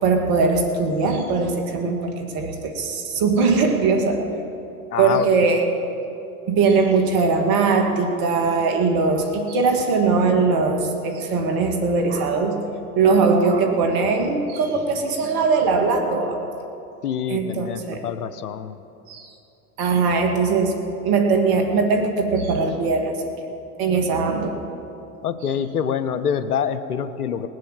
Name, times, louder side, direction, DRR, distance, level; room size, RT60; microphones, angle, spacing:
voice 1, 0.0-4.2 5.0-5.6 6.5-12.6 13.0-16.4 17.3-18.0 19.1-19.3 19.8-20.8 21.0-23.1 23.8-24.6, right 4 dB, 50° right, 4 dB, 2.4 m, -20 dB
voice 2, 4.9-5.3 17.0-18.8 25.2-27.5, left 8 dB, 90° left, 13 dB, 0.8 m, -26 dB
19.5 x 7.7 x 7.6 m, 2.8 s
hypercardioid pair, 80°, 45 cm